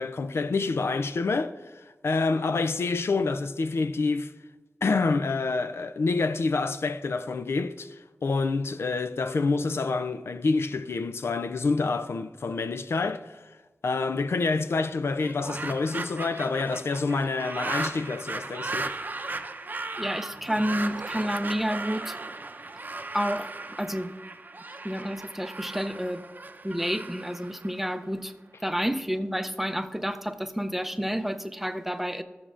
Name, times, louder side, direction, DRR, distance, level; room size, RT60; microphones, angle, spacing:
voice 1, 0.0-4.3 4.8-13.4 13.8-18.9, left 3 dB, 75° left, 0.4 m, -27 dB
sound 1, 15.1-28.3, right 3 dB, 45° right, 0.6 m, -36 dB
voice 2, 20.0-22.2 23.1-23.5 23.8-24.1 24.8-26.2 26.6-28.3 28.6-32.2, equal, 5° right, 0.5 m, -30 dB
16.0 x 6.7 x 2.5 m
wide cardioid pair, 70°, 4 cm